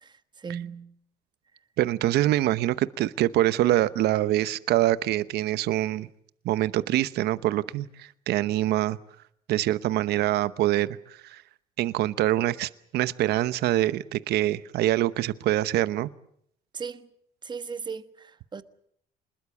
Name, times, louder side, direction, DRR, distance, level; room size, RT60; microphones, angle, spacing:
voice 1, 0.0-0.9 16.7-17.1 17.4-18.6, right 6 dB, 25° right, 1.4 m, -37 dB
voice 2, 1.8-6.1 6.4-9.0 9.5-11.4 11.8-16.1, right 14 dB, 75° right, 0.9 m, -25 dB
26.0 x 21.0 x 7.1 m
cardioid pair, 110°, 17 cm